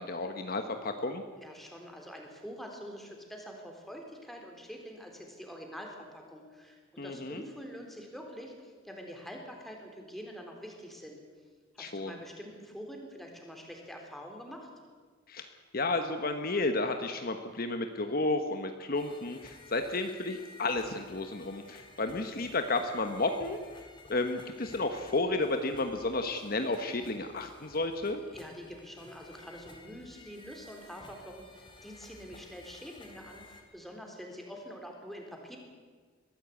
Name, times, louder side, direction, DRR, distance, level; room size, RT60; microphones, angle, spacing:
voice 1, 0.0-1.2 7.0-7.4 11.8-12.2 15.3-15.5 15.7-23.6 24.1-28.2, left 2 dB, 50° left, 6 dB, 1.3 m, -32 dB
voice 2, 1.4-11.2 11.7-14.7 28.3-35.6, equal, ahead, 1 dB, 3.7 m, -46 dB
sound 1, 18.9-33.6, left 2 dB, 25° left, 3.2 m, -54 dB
22.0 x 14.5 x 8.5 m, 1.5 s
head